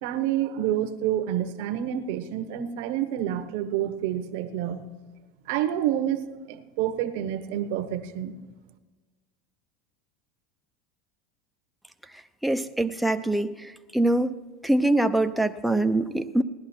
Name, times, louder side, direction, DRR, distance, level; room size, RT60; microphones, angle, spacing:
voice 1, 0.0-4.8 5.5-8.3, right 11 dB, 70° right, 9 dB, 1.1 m, -28 dB
voice 2, 12.4-14.3 14.6-16.4, right 1 dB, ahead, 7 dB, 0.6 m, -24 dB
17.5 x 11.0 x 4.4 m, 1.3 s
supercardioid pair, 130°, 0 cm